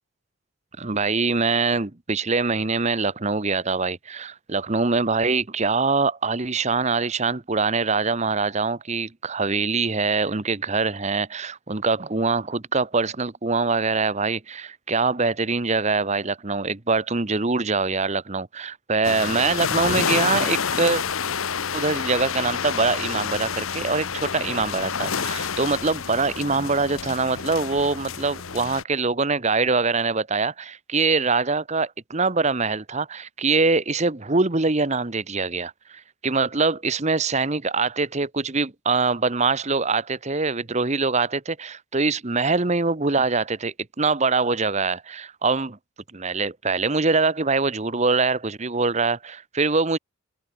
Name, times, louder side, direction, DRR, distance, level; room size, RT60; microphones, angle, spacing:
voice 1, 0.8-21.0 21.7-45.8 46.1-50.0, right 4 dB, 30° right, 1.0 m, -23 dB
sound 1, 19.0-28.8, left 6 dB, 70° left, 1.2 m, -28 dB
head